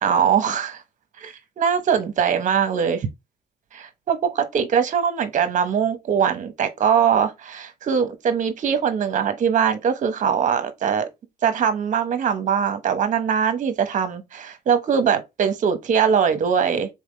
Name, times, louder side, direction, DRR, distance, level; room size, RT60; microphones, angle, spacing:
voice 1, 0.0-0.8 1.2-3.1 3.7-11.1 11.4-16.9, right 7 dB, 50° right, 1.0 m, -22 dB
3.8 x 3.5 x 3.2 m
cardioid pair, 110°, 17 cm